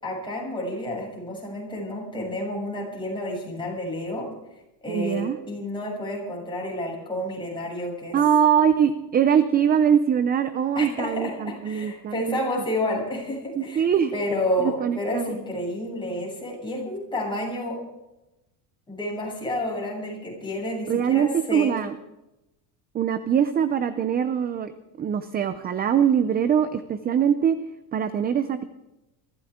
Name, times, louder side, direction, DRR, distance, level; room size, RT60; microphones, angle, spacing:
voice 1, 0.0-4.3 4.8-8.2 10.8-13.9 14.1-17.8 18.9-21.7, left 1 dB, 10° left, -3 dB, 7.2 m, -30 dB
voice 2, 4.9-5.4 8.1-12.5 13.6-14.1 14.6-15.4 20.9-21.9 22.9-24.7 25.0-27.6 27.9-28.6, right 8 dB, 20° right, 12 dB, 0.5 m, -22 dB
23.5 x 15.0 x 3.7 m, 0.97 s
cardioid pair, 140°, 45 cm